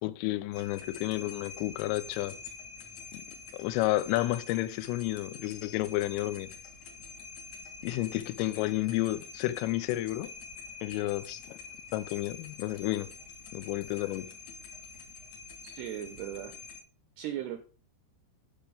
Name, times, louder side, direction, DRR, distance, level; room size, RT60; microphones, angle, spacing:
voice 1, 0.0-2.4 3.1-3.2 3.5-6.5 7.8-10.3 10.8-11.6 11.9-13.1 13.5-14.3, left 16 dB, 90° left, 3.3 m, -31 dB
sound 1, 0.5-16.8, left 5 dB, 60° left, 2.0 m, -47 dB
voice 2, 15.6-16.6 17.2-17.6, right 11 dB, 80° right, 2.4 m, -38 dB
10.5 x 7.0 x 5.1 m
omnidirectional pair, 5.7 m